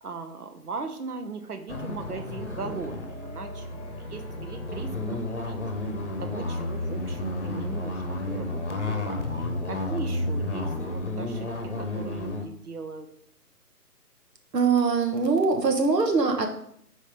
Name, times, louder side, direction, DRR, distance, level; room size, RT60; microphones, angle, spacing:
voice 1, 0.0-5.2 5.4-5.6 6.2-13.1, right 4 dB, 65° right, 7 dB, 1.0 m, -39 dB
sound 1, 1.7-12.4, left 2 dB, 45° left, 0.9 m, -32 dB
sound 2, 1.9-12.6, right 1 dB, 25° left, 1.0 m, -43 dB
voice 2, 14.5-16.5, right 4 dB, 85° right, 4 dB, 1.5 m, -22 dB
5.4 x 4.2 x 5.0 m, 0.69 s
hypercardioid pair, 175°, 48 cm